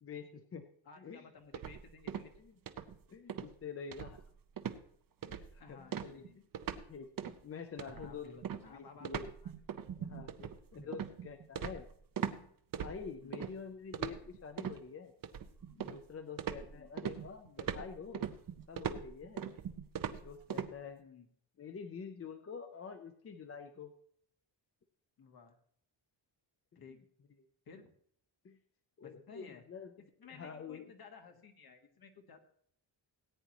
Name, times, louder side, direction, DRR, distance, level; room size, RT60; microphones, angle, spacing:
voice 1, 0.0-0.7 1.0-1.2 2.4-4.2 5.2-6.3 6.9-7.1 7.4-9.3 10.0-10.3 10.7-11.9 12.4-12.5 12.8-15.1 15.6-18.3 18.7-19.5 20.2-21.0 21.6-23.9 28.4-28.6 29.0-29.9 30.3-30.8, left 6 dB, 30° left, 7 dB, 0.6 m, -47 dB
voice 2, 0.8-2.3 5.6-6.4 7.8-9.1 10.4-10.5 10.8-10.9 13.2-13.4 16.6-16.9 21.0-21.3 25.2-25.6 26.7-27.0 27.7-27.9 29.0-29.6 30.2-32.4, left 5 dB, 50° left, 4 dB, 1.6 m, -55 dB
sound 1, 1.5-2.4 2.7-3.0 3.3-3.5 3.9-4.3 4.6-4.8 5.2-5.6 5.9-6.9 7.2-7.4 7.8-12.4 12.7-13.5 13.9-14.8 15.2-16.1 16.4-20.7, right 8 dB, 45° right, 0.7 m, -40 dB
17.5 x 9.2 x 3.0 m, 0.63 s
wide cardioid pair, 175°, 45 cm